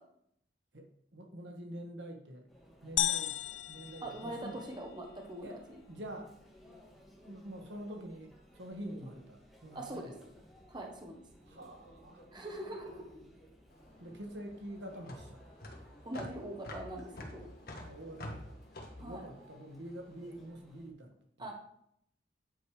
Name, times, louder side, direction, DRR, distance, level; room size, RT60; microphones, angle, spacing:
voice 1, 0.7-2.5 2.8-3.4 3.7-4.6 5.4-5.6 5.9-6.3 7.2-10.1 11.5-12.2 14.0-15.4 17.8-18.6 19.0-21.5, right 1 dB, 70° right, 3 dB, 1.4 m, -46 dB
Conversation / Chatter / Crowd, 2.5-20.9, equal, ahead, 1.9 m, -59 dB
sound 1, 3.0-4.9, left 12 dB, 85° left, 0.5 m, -35 dB
voice 2, 4.0-5.8 9.7-10.1 10.7-11.2 12.3-13.1 16.0-17.5 19.0-19.3 21.4-21.5, right 1 dB, 25° right, 1 dB, 1.2 m, -42 dB
sound 2, 13.7-20.2, left 1 dB, 55° left, 1.5 m, -47 dB
9.2 x 5.1 x 4.9 m, 0.71 s
head